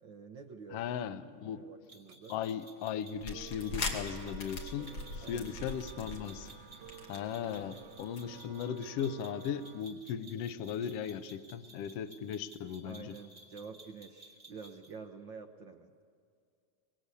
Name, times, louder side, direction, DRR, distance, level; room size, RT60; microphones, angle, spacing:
voice 1, 0.0-0.8 1.4-2.4 5.2-5.5 12.8-15.9, right 5 dB, 65° right, 5 dB, 1.1 m, -48 dB
voice 2, 0.7-1.6 2.3-6.5 7.1-13.2, left 8 dB, 65° left, 10 dB, 1.7 m, -37 dB
sound 1, 0.8-9.8, right 10 dB, 90° right, 2.5 m, -54 dB
sound 2, 1.9-14.9, right 2 dB, 10° right, 2.2 m, -56 dB
sound 3, 3.1-8.2, left 3 dB, 50° left, 3.1 m, -42 dB
24.5 x 20.5 x 8.3 m, 2.2 s
omnidirectional pair, 3.4 m